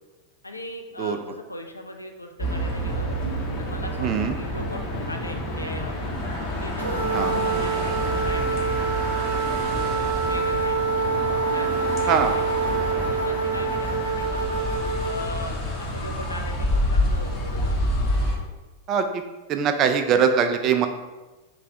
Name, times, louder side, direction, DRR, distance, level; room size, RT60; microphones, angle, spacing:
voice 1, 0.4-3.1 3.6-6.1 6.6-10.8 11.4-12.7 12.9-14.5 15.0-17.8, left 1 dB, 85° left, 4 dB, 0.4 m, -39 dB
sound 1, 2.4-18.4, left 1 dB, 35° left, 1.1 m, -28 dB
voice 2, 4.0-4.3 7.1-7.4 12.1-12.3 18.9-19.2 19.5-20.9, right 7 dB, 35° right, 7 dB, 0.4 m, -22 dB
sound 2, 6.8-15.3, right 5 dB, 70° right, 0.8 m, -26 dB
3.3 x 3.1 x 4.7 m, 1.1 s
figure-of-eight pair, 90°, 0 cm